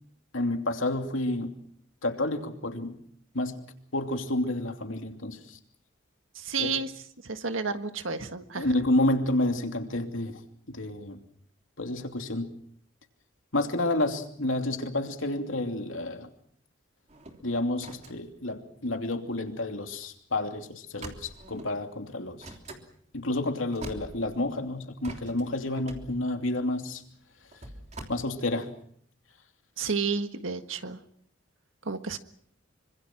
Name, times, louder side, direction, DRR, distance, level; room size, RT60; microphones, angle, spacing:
voice 1, 0.3-1.6 2.0-3.0 3.3-3.6 3.9-5.4 6.6-6.7 8.6-10.4 10.7-11.2 11.8-12.5 13.5-16.3 17.4-22.5 23.1-27.0 28.1-28.7, left 1 dB, 90° left, 5 dB, 2.9 m, -30 dB
voice 2, 6.3-6.9 7.2-8.7 29.8-31.0 31.8-32.2, right 4 dB, 80° right, 8 dB, 1.7 m, -31 dB
sound 1, 17.1-19.5 19.9-20.1 20.3-20.5 21.0-21.8 22.4-22.9 23.4-23.5 23.7-24.6 25.0-28.0, right 2 dB, 35° right, 3.3 m, -44 dB
26.0 x 25.0 x 6.1 m, 0.65 s
head